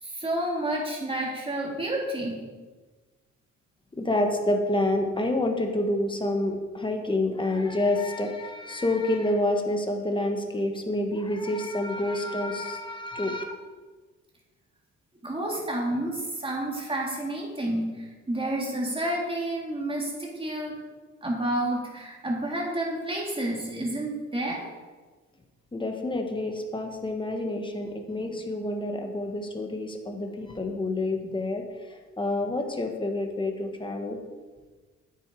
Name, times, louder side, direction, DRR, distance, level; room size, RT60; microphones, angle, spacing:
voice 1, 0.0-2.3 15.2-20.7 21.2-24.7, right 1 dB, 20° right, -2 dB, 3.4 m, -30 dB
voice 2, 4.0-13.4 25.7-31.6 31.9-34.2, left 1 dB, 15° left, 3 dB, 1.8 m, -28 dB
9.4 x 9.2 x 4.9 m, 1.3 s
cardioid pair, 90°, 30 cm